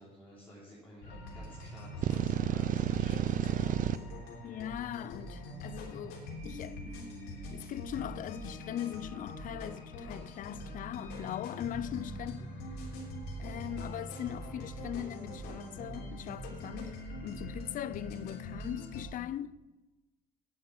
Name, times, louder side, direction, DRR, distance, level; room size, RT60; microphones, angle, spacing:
voice 1, 0.0-4.1, equal, 10° left, 3.8 m, -53 dB
sound 1, 1.0-19.0, equal, 85° left, 3.4 m, -43 dB
sound 2, 2.0-4.0, right 11 dB, 50° right, 0.6 m, -30 dB
voice 2, 4.4-7.0 7.5-12.5 13.4-17.0 17.2-19.6, left 11 dB, 50° left, 0.5 m, -40 dB
9.7 x 8.7 x 7.2 m
cardioid pair, 110°, 17 cm